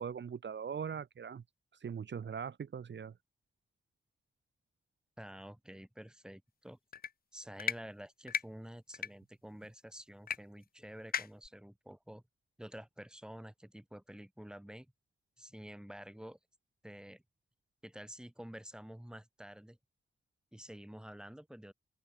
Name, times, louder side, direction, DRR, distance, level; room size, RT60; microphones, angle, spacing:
voice 1, 0.0-1.4 1.8-3.1, right 7 dB, 65° right, 1.5 m, -40 dB
voice 2, 5.2-6.8 7.3-12.2 12.6-14.9 15.4-16.4 16.8-17.2 17.8-19.8 20.5-21.7, equal, 5° right, 6.3 m, -49 dB
sound 1, 6.9-7.1 7.6-7.8 8.3-8.4 8.9-9.1 10.3-10.4 10.6-10.7 11.1-11.5, left 7 dB, 50° left, 0.5 m, -35 dB
open air
wide cardioid pair, 125°, 20 cm